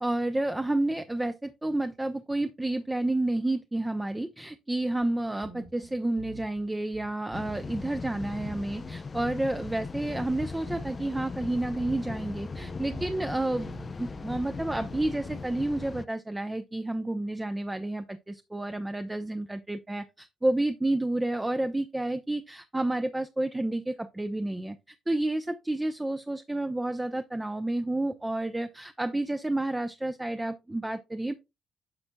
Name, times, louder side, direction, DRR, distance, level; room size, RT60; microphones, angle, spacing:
voice 1, 0.0-13.7 14.0-24.8 25.1-31.3, right 1 dB, 10° right, 0.6 m, -30 dB
sound 1, 5.0-5.1 5.4-6.6 6.9-7.7 8.0-11.1 11.4-12.3 12.5-13.3 13.7-15.5, right 3 dB, 50° right, 2.7 m, -47 dB
sound 2, 7.3-16.1, left 4 dB, 35° left, 0.4 m, -39 dB
9.7 x 6.0 x 2.2 m
cardioid pair, 90°, 0 cm